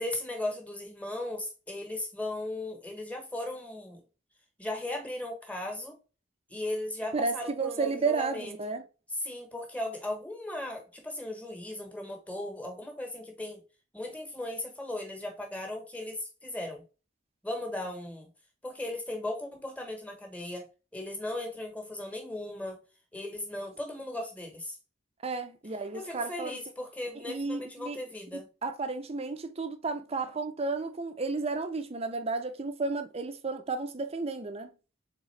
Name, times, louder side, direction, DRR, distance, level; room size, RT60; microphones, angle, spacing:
voice 1, 0.0-4.0 4.6-5.9 6.5-8.5 9.1-13.6 13.9-16.8 17.4-18.3 18.6-20.6 20.9-22.8 23.1-24.8 25.9-28.5, left 1 dB, 5° left, 1.0 m, -37 dB
voice 2, 7.1-8.8 25.2-26.6 27.1-28.0 28.3-34.7, right 4 dB, 30° right, 0.5 m, -32 dB
3.7 x 3.6 x 3.1 m
head